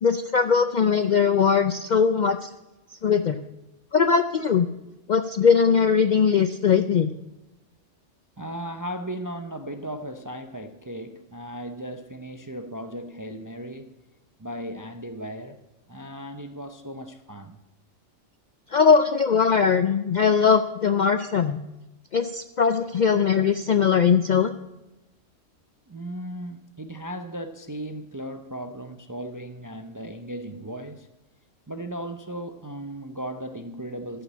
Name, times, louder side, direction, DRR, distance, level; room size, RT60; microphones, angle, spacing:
voice 1, 0.0-2.5 2.9-3.4 3.9-4.7 5.1-7.1 18.7-21.6 22.1-24.5, left 6 dB, 60° left, 0.5 m, -20 dB
voice 2, 8.4-13.9 14.4-15.6 15.9-17.6 25.9-31.1 31.7-34.2, right 1 dB, 25° right, 0.4 m, -36 dB
13.0 x 5.8 x 8.5 m
omnidirectional pair, 1.3 m